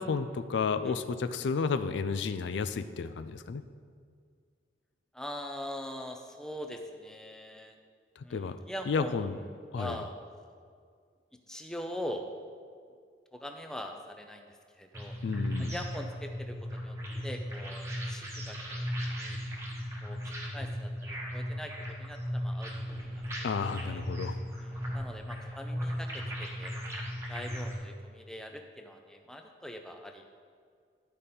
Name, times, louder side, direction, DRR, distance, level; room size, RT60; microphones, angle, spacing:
voice 1, 0.0-3.6 8.2-8.6 8.9-9.4 9.7-10.0 15.2-15.7 23.4-24.4, left 5 dB, 80° left, 11 dB, 0.4 m, -32 dB
voice 2, 5.1-7.8 8.2-9.3 9.7-10.1 11.5-12.3 13.3-15.2 15.6-17.0 17.2-19.4 20.0-22.7 23.1-24.0 24.6-26.7 27.3-30.2, left 1 dB, 5° left, 4 dB, 0.5 m, -42 dB
sound 1, 14.9-27.8, equal, 15° right, 1.1 m, -37 dB
11.0 x 5.2 x 4.2 m, 2.1 s
head